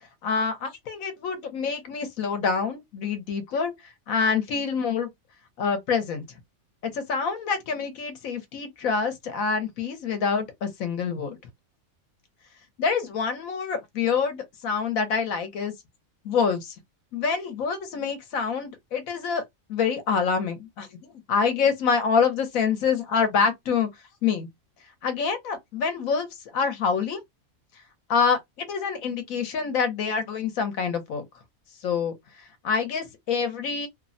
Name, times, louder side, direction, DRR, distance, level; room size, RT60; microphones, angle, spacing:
voice 1, 0.2-3.7 4.1-5.1 5.6-6.2 6.9-11.4 12.8-15.7 16.2-16.7 17.1-19.4 19.7-23.9 24.2-24.5 25.0-26.3 26.5-27.2 28.1-31.2 31.8-32.1 32.6-33.9, left 5 dB, 75° left, 1.2 m, -26 dB
3.0 x 2.1 x 2.6 m
omnidirectional pair, 1.5 m